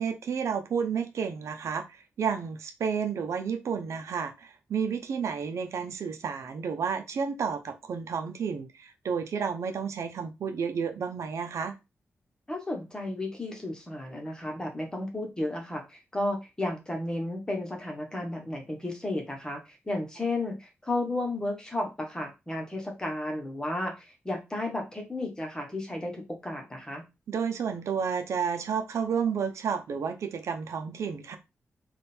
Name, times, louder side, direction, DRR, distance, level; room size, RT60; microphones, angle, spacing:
voice 1, 0.0-11.8 27.3-31.4, right 6 dB, 85° right, 7 dB, 0.6 m, -31 dB
voice 2, 12.5-27.0, left 2 dB, 15° left, 2 dB, 1.1 m, -33 dB
3.6 x 2.4 x 4.3 m, 0.25 s
wide cardioid pair, 150°, 5 cm